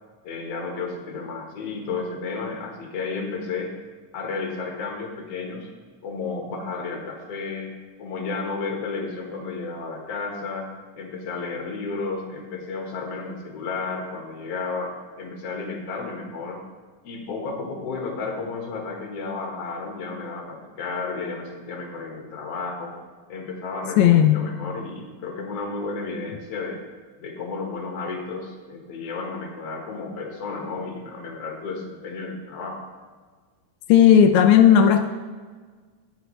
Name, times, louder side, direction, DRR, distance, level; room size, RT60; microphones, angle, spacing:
voice 1, 0.2-3.8 4.1-5.7 6.0-7.7 8.0-10.7 10.9-16.6 17.0-22.9 23.3-26.8 27.2-32.8, left 4 dB, 55° left, 1 dB, 2.1 m, -32 dB
voice 2, 24.0-24.4 33.9-35.1, left 9 dB, 90° left, 7 dB, 1.6 m, -14 dB
17.5 x 6.2 x 3.2 m, 1.5 s
omnidirectional pair, 3.9 m